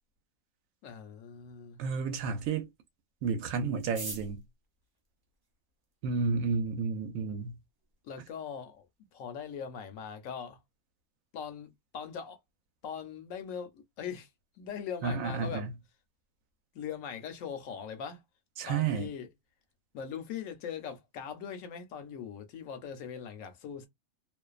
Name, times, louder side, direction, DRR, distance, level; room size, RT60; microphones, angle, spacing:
voice 1, 0.8-1.8 8.0-8.9 9.1-10.6 11.3-12.4 12.8-14.3 14.6-15.7 16.7-18.2 18.7-19.3 19.9-23.9, left 7 dB, 70° left, 0.9 m, -41 dB
voice 2, 1.8-2.7 3.2-4.4 6.0-7.6 15.0-15.7 18.6-19.1, right 5 dB, 70° right, 0.9 m, -31 dB
sound 1, 3.8-6.0 6.8-6.9 7.1-7.2 7.5-8.0 8.3-8.4 8.6-9.0 9.3-9.5 9.9-10.2, right 2 dB, 35° right, 0.4 m, -45 dB
2.5 x 2.2 x 2.3 m
omnidirectional pair, 1.5 m